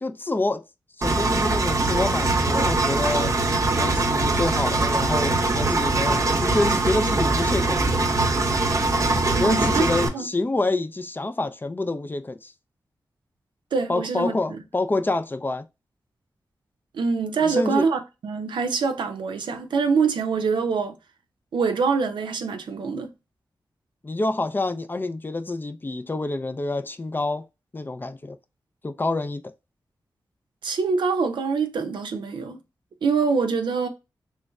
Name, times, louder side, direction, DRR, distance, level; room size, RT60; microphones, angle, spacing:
voice 1, 0.0-0.6 1.0-3.4 3.8-8.0 9.4-12.5 13.9-15.6 17.4-17.9 24.0-27.5 27.7-28.4 28.8-29.5, left 2 dB, 25° left, 0.4 m, -27 dB
Engine, 1.0-10.1, right 2 dB, 45° right, 0.6 m, -22 dB
voice 2, 9.4-9.8 10.1-10.3 13.7-14.6 16.9-21.0 21.5-23.1 30.6-32.6 33.0-33.9, right 5 dB, 85° right, 0.5 m, -24 dB
3.1 x 3.1 x 2.3 m
cardioid pair, 60°, 8 cm